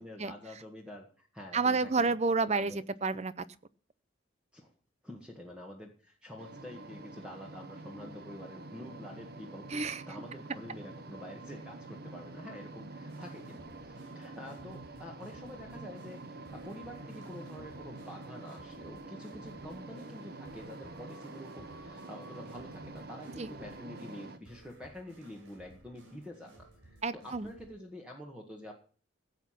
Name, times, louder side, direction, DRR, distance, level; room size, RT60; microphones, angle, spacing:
voice 1, 0.0-2.1 2.5-2.8 4.5-4.7 5.0-28.8, left 1 dB, 5° right, 0 dB, 1.7 m, -47 dB
voice 2, 1.5-3.4 9.7-10.0 23.4-23.5 27.0-27.5, right 4 dB, 35° right, 16 dB, 0.6 m, -30 dB
sound 1, 6.4-24.4, right 2 dB, 50° right, 1.1 m, -47 dB
sound 2, 13.1-27.7, right 1 dB, 80° right, 4.7 m, -58 dB
15.5 x 8.2 x 5.8 m, 0.42 s
head